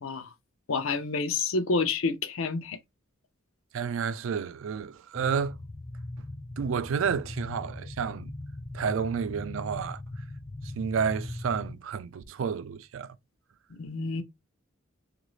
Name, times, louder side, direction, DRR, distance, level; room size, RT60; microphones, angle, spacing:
voice 1, 0.7-2.8 13.8-14.2, left 4 dB, 80° left, 0.6 m, -28 dB
voice 2, 3.7-5.6 6.6-8.3 8.7-10.0 10.8-13.1, right 6 dB, 70° right, 0.3 m, -30 dB
sound 1, 5.1-11.7, left 1 dB, 20° left, 0.3 m, -40 dB
3.0 x 2.5 x 3.0 m
head